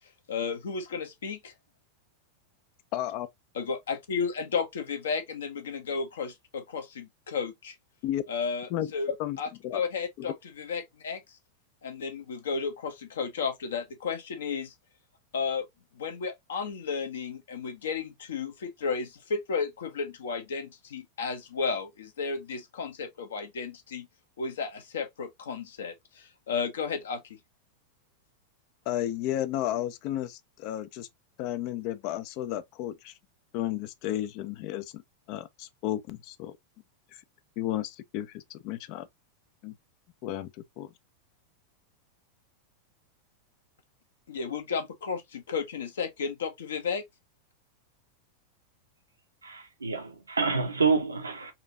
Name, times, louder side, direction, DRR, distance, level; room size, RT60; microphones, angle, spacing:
voice 1, 0.3-1.5 3.5-7.7 8.3-11.2 11.8-14.7 15.3-15.6 16.0-24.1 24.4-27.4 44.3-47.0, left 5 dB, 65° left, 0.9 m, -33 dB
voice 2, 2.9-3.3 8.0-8.2 8.7-8.9 9.2-9.4 9.6-9.8 10.2-10.3 28.9-31.1 31.4-33.1 33.5-35.0 35.3-36.6 37.1-37.2 37.6-39.1 39.6-39.7 40.2-40.5 40.8-40.9, left 13 dB, 45° left, 0.4 m, -33 dB
voice 3, 49.4-51.5, right 4 dB, 80° right, 0.9 m, -28 dB
4.1 x 2.7 x 2.5 m
figure-of-eight pair, 90°, 0 cm